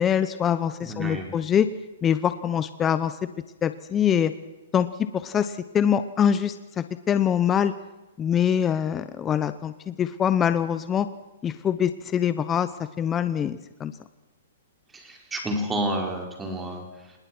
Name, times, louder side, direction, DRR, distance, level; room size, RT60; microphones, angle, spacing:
voice 1, 0.0-1.7 2.0-3.1 3.6-4.3 4.7-4.9 5.1-7.7 8.2-11.1 11.4-12.7 13.0-13.9, left 8 dB, 20° left, 12 dB, 0.8 m, -24 dB
voice 2, 0.8-1.4 14.9-16.9, right 1 dB, 10° right, 2 dB, 4.7 m, -30 dB
26.0 x 20.5 x 6.1 m, 1.1 s
hypercardioid pair, 150°, 0 cm